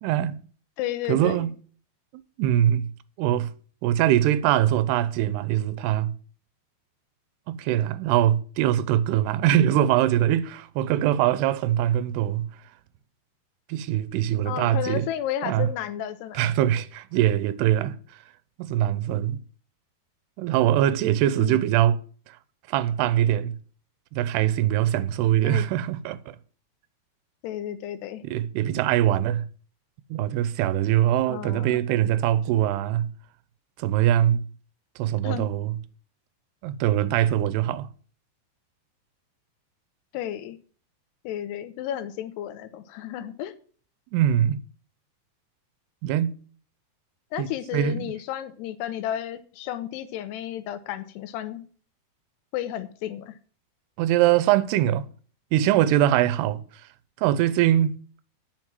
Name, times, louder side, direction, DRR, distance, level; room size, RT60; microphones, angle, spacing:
voice 1, 0.0-0.4 1.1-1.5 2.4-2.9 3.2-3.5 3.8-6.1 7.5-12.5 13.7-15.1 15.4-15.7 16.3-18.0 18.6-19.4 20.4-22.0 22.3-22.4 22.7-23.6 24.1-26.4 28.2-29.5 30.1-33.1 33.8-34.5 35.0-35.8 36.6-37.9 44.1-44.6 46.0-46.4 47.4-48.1 54.0-55.1 55.5-56.6 57.2-58.0, right 12 dB, 85° right, 2.7 m, -22 dB
voice 2, 0.8-1.5 14.5-16.4 21.4-21.7 25.4-25.7 27.4-28.2 31.3-31.8 35.2-35.5 40.1-40.6 41.2-43.5 47.3-51.6 52.5-53.4, left 11 dB, 90° left, 3.0 m, -32 dB
9.3 x 6.0 x 7.4 m
omnidirectional pair, 4.7 m